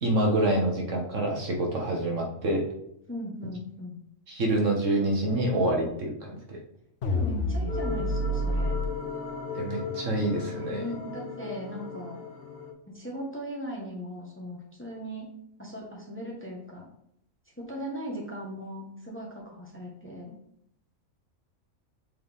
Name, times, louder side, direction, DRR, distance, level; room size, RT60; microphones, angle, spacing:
voice 1, 0.0-2.6 4.3-6.6 9.5-10.8, right 1 dB, 65° right, 0 dB, 1.5 m, -27 dB
voice 2, 3.1-3.9 7.1-8.8 10.8-12.2 12.9-15.3 15.6-16.9 17.6-20.3, equal, 10° left, -2 dB, 1.2 m, -38 dB
sound 1, 7.0-8.9, equal, 65° left, 1.1 m, -28 dB
sound 2, 7.7-12.7, left 5 dB, 85° left, 1.6 m, -37 dB
7.6 x 4.0 x 3.6 m, 0.72 s
omnidirectional pair, 1.4 m